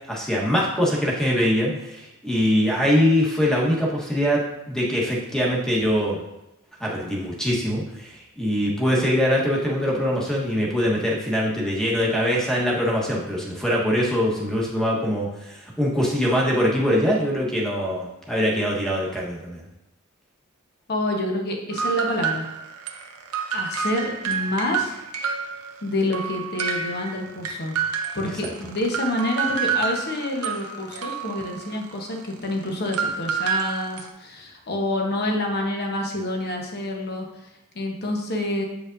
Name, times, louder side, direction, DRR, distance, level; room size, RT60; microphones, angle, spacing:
voice 1, 0.1-4.4 4.7-6.2 6.8-19.6, equal, 5° left, -4 dB, 1.2 m, -23 dB
voice 2, 20.9-22.5 23.5-25.0 25.8-27.8 28.1-37.3 37.7-38.6, left 1 dB, 50° left, 1 dB, 1.0 m, -27 dB
sound 1, 21.7-25.9 26.1-34.1, right 6 dB, 85° right, 0.7 m, -29 dB
7.6 x 5.0 x 2.6 m, 0.91 s
head